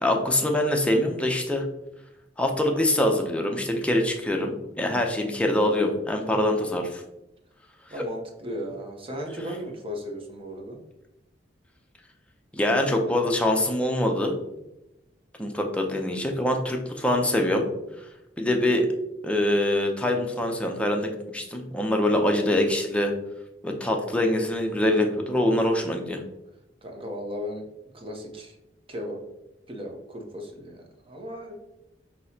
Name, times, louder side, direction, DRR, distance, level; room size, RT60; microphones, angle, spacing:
voice 1, 0.0-1.7 2.4-7.0 12.5-14.3 15.4-17.7 18.4-18.9 19.2-23.1 23.6-26.2, left 1 dB, 5° left, 2 dB, 0.5 m, -24 dB
voice 2, 7.9-10.8 26.8-27.7 27.9-28.6 28.9-29.2 29.7-31.5, equal, 30° right, 2 dB, 0.7 m, -36 dB
6.0 x 2.8 x 2.7 m, 0.89 s
head